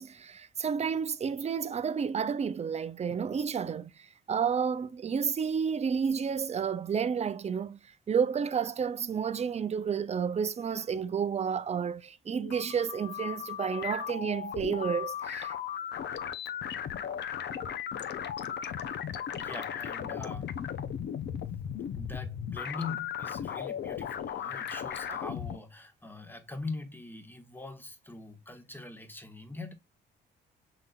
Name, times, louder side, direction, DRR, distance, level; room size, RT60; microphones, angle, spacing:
voice 1, 0.0-7.8 8.1-15.6 25.1-25.2, right 6 dB, 35° right, 0.5 m, -31 dB
sound 1, 12.3-25.6, left 9 dB, 60° left, 0.6 m, -36 dB
voice 2, 19.1-20.6 21.9-29.7, left 3 dB, 10° left, 1.1 m, -42 dB
5.6 x 3.9 x 2.3 m
cardioid pair, 90°, 20 cm